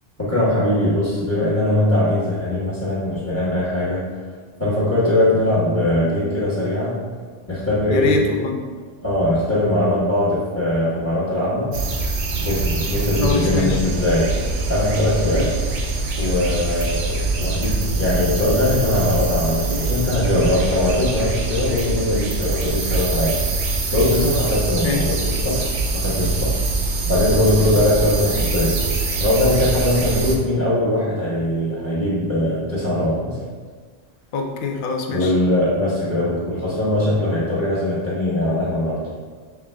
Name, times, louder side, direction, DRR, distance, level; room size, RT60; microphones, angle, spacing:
voice 1, 0.2-4.1 4.6-7.0 7.5-8.2 9.0-11.8 12.4-14.3 14.7-15.6 16.2-23.4 23.9-26.6 27.0-28.8 29.2-33.4 35.1-39.0, left 1 dB, 15° left, -10 dB, 1.1 m, -21 dB
voice 2, 7.9-8.6 13.2-13.8 24.8-25.1 34.3-35.3, left 5 dB, 55° left, 2 dB, 0.6 m, -24 dB
sound 1, 11.7-30.4, right 3 dB, 75° right, 0.9 m, -24 dB
5.9 x 3.6 x 2.2 m, 1.5 s
omnidirectional pair, 1.1 m